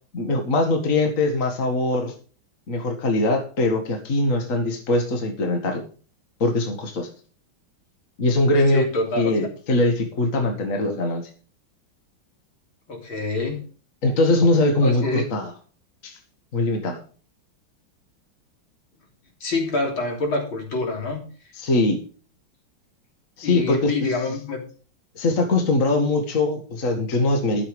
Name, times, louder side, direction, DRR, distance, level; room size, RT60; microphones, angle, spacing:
voice 1, 0.1-2.1 2.7-5.9 6.4-7.1 8.2-8.8 9.2-11.3 14.0-15.5 16.0-16.2 16.5-17.0 21.6-22.0 23.4-24.1 25.2-27.7, left 2 dB, 40° left, 3 dB, 2.1 m, -22 dB
voice 2, 8.7-9.3 12.9-13.6 14.8-15.2 19.4-21.2 23.4-24.6, left 2 dB, 75° left, 1 dB, 4.0 m, -26 dB
13.0 x 7.5 x 5.2 m, 0.39 s
omnidirectional pair, 2.3 m